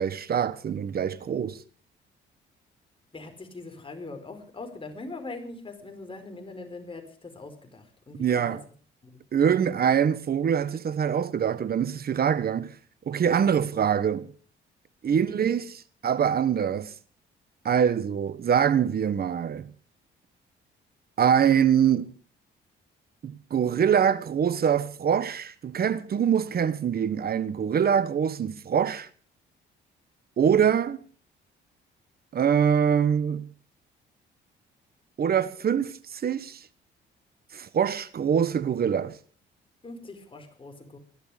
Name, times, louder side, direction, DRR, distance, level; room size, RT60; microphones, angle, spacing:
voice 1, 0.0-1.6 8.2-8.6 9.3-12.8 13.1-14.3 15.0-15.7 16.0-16.9 17.6-19.7 21.2-22.1 23.2-29.1 30.4-31.0 32.3-33.5 35.2-36.6 37.5-39.2, right 8 dB, 50° right, 1.3 m, -24 dB
voice 2, 3.1-8.6 9.0-9.2 15.1-15.6 39.8-41.0, left 3 dB, 25° left, 4.9 m, -42 dB
21.0 x 12.0 x 5.1 m
cardioid pair, 90°, 20 cm